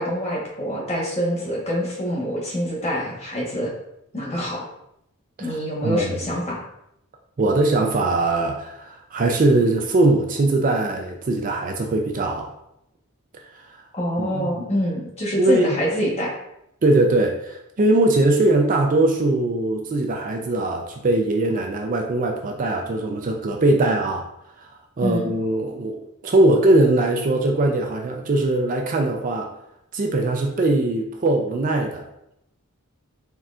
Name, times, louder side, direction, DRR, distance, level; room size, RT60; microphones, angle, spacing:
voice 1, 0.0-3.7 4.1-4.6 5.4-6.6 13.9-16.3 25.0-25.3, equal, 30° left, -4 dB, 1.1 m, -25 dB
voice 2, 7.4-12.5 13.5-13.8 14.2-14.6 15.3-15.8 16.8-24.3 24.6-24.7 25.0-29.5 29.9-32.0, right 2 dB, 35° right, 2 dB, 0.4 m, -21 dB
4.3 x 3.5 x 2.4 m, 0.80 s
head